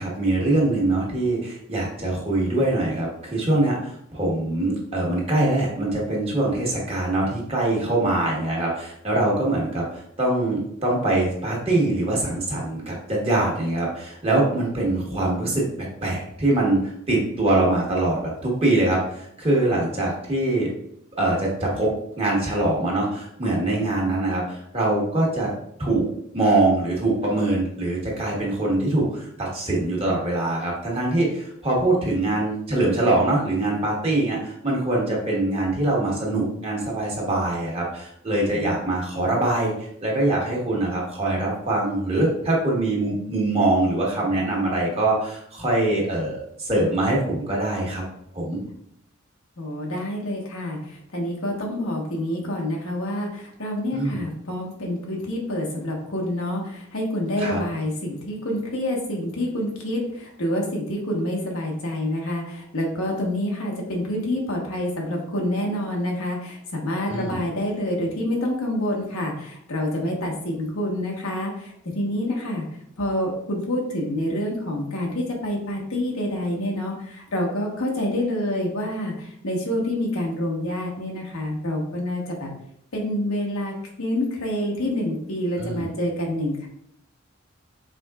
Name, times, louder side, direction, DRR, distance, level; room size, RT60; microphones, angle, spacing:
voice 1, 0.0-15.6 16.0-20.7 21.2-21.9 22.2-25.5 25.8-26.1 26.3-39.7 40.0-48.0 48.3-48.6 53.9-54.2 57.4-57.6 67.1-67.4 85.6-85.8, right 2 dB, 30° right, -3 dB, 1.3 m, -23 dB
voice 2, 23.8-24.4 38.5-38.7 49.6-72.6 73.0-82.5 82.9-86.7, left 1 dB, 90° left, -1 dB, 1.2 m, -27 dB
5.0 x 3.8 x 2.4 m, 0.70 s
head